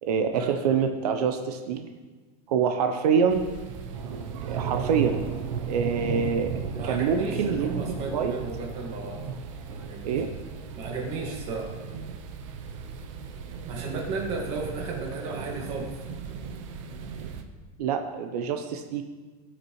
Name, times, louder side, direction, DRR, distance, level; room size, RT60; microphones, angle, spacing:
voice 1, 0.0-1.9 2.5-3.5 4.5-5.2 5.7-6.5 6.8-7.8 8.1-8.3 10.0-10.3 17.8-19.0, right 6 dB, 85° right, 6 dB, 0.8 m, -25 dB
sound 1, 3.3-17.4, right 6 dB, 55° right, 0.8 m, -35 dB
voice 2, 6.7-9.2 9.7-10.2 10.7-11.7 13.7-16.0, right 3 dB, 30° right, 0 dB, 1.7 m, -34 dB
16.5 x 6.0 x 3.1 m, 1.3 s
supercardioid pair, 175°, 20 cm